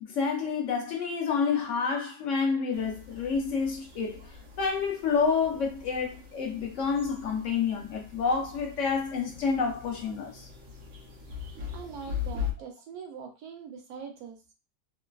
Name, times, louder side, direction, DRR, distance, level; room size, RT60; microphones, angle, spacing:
voice 1, 0.0-4.2 4.6-10.5, left 5 dB, 65° left, 0.8 m, -29 dB
sound 1, 2.7-12.5, left 8 dB, 65° right, 1.0 m, -41 dB
voice 2, 11.7-14.4, right 6 dB, 85° right, 1.1 m, -42 dB
3.1 x 2.2 x 2.2 m
omnidirectional pair, 1.6 m